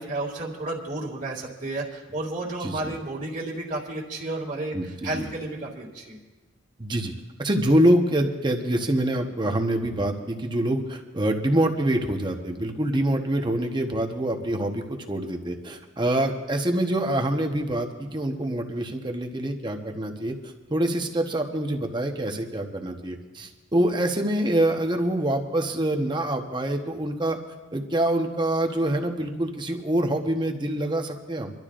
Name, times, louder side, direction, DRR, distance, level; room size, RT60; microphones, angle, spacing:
voice 1, 0.0-6.2, right 2 dB, 40° right, -1 dB, 2.2 m, -32 dB
voice 2, 2.6-2.9 4.7-5.3 6.8-7.1 7.4-27.4 27.7-31.5, right 1 dB, 25° right, 4 dB, 1.0 m, -25 dB
27.5 x 12.0 x 2.5 m, 1.3 s
head